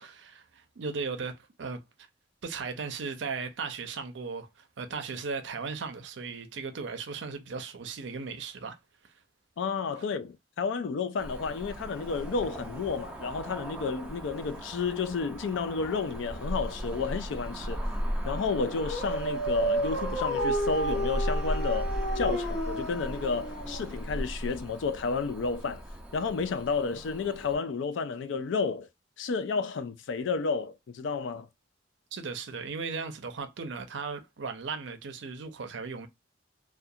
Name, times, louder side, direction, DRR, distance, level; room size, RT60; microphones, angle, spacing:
voice 1, 0.0-1.8 2.4-8.8 32.1-36.1, right 5 dB, 65° right, 0.5 m, -37 dB
voice 2, 9.6-17.8 18.2-25.8 26.1-28.9 29.2-31.5, left 4 dB, 65° left, 0.4 m, -31 dB
Cricket / Motor vehicle (road), 11.2-27.6, equal, 5° right, 0.5 m, -37 dB
Dog, 18.6-24.2, right 1 dB, 35° left, 0.7 m, -32 dB
2.4 x 2.2 x 2.6 m
head